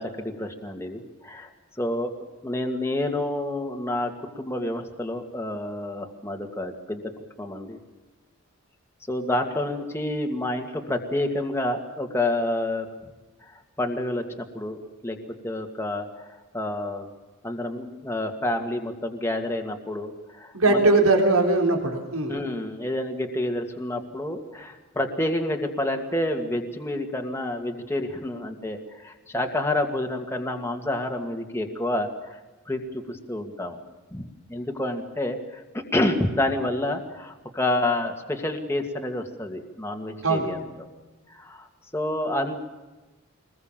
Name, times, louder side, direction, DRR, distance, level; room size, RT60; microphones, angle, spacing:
voice 1, 0.0-1.5 1.8-2.1 2.4-7.1 7.4-7.8 9.1-12.9 13.8-15.2 15.4-17.1 17.4-20.9 22.3-32.3 32.7-33.8 34.1-40.6 41.3-41.7 41.9-42.6, left 1 dB, 10° left, 3 dB, 2.2 m, -29 dB
voice 2, 20.5-22.4 40.2-40.5, right 2 dB, 80° right, 3 dB, 3.8 m, -20 dB
24.0 x 20.5 x 7.5 m, 1.2 s
head